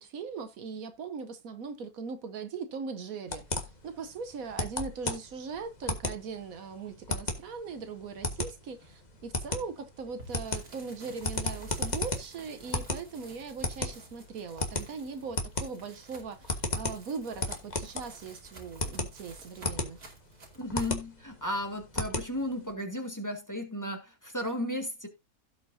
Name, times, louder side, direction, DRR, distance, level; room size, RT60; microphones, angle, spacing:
voice 1, 0.0-20.0, right 5 dB, 70° right, 1.3 m, -40 dB
sound 1, 3.3-22.7, left 2 dB, 30° left, 1.5 m, -35 dB
sound 2, 10.2-21.0, right 2 dB, 85° right, 3.1 m, -53 dB
voice 2, 20.6-25.1, left 1 dB, 10° left, 1.7 m, -34 dB
16.5 x 5.5 x 2.7 m
omnidirectional pair, 1.6 m